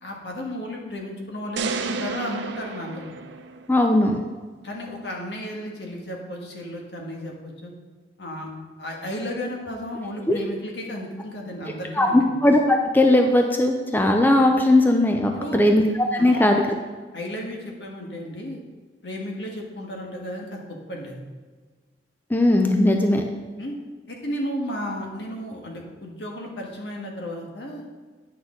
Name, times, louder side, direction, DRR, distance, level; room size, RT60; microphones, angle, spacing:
voice 1, 0.0-3.1 4.6-7.7 8.2-8.5 8.8-12.2 15.3-15.6 16.2-16.6 17.1-18.6 19.0-21.2 23.6-23.8 24.1-27.8, equal, 70° left, 0 dB, 1.5 m, -33 dB
sound 1, 1.6-3.9, right 4 dB, 85° right, 0.5 m, -31 dB
voice 2, 3.7-4.2 10.3-10.4 12.0-15.8 16.2-16.6 22.3-23.2, left 1 dB, 10° left, 3 dB, 0.5 m, -18 dB
9.5 x 6.2 x 3.8 m, 1.4 s
head